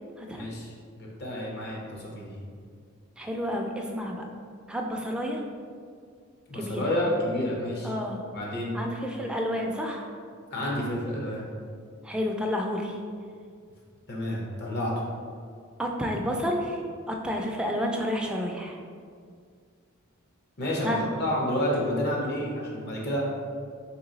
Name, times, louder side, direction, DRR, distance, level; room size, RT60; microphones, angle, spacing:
voice 1, 0.3-2.3 6.5-7.9 8.3-8.7 10.5-11.5 14.1-15.1 20.6-23.2, left 1 dB, 55° left, -3 dB, 0.8 m, -30 dB
voice 2, 3.2-4.3 4.7-5.4 6.5-6.8 7.8-8.2 8.7-10.1 12.0-12.9 15.8-16.8 17.1-18.8 20.8-21.0, equal, 5° right, 0 dB, 0.3 m, -30 dB
3.0 x 2.9 x 3.9 m, 2.1 s
head